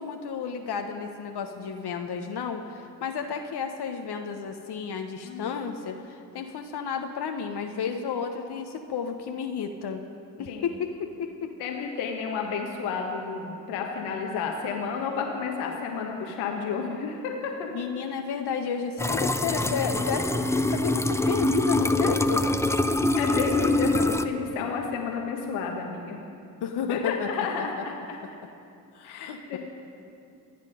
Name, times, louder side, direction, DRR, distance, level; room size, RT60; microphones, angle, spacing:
voice 1, 0.0-10.0 10.4-11.5 17.7-20.3 20.7-22.5 26.6-27.3 27.6-27.7 28.9-29.6, left 6 dB, 55° left, 5 dB, 1.3 m, -32 dB
voice 2, 5.2-5.5 10.5-10.7 11.6-17.7 23.2-26.2 26.9-28.2 29.0-29.6, left 5 dB, 75° left, 1 dB, 1.7 m, -31 dB
sound 1, 19.0-24.3, left 1 dB, 5° left, 0.7 m, -24 dB
27.5 x 9.6 x 5.2 m, 2.5 s
hypercardioid pair, 40°, 48 cm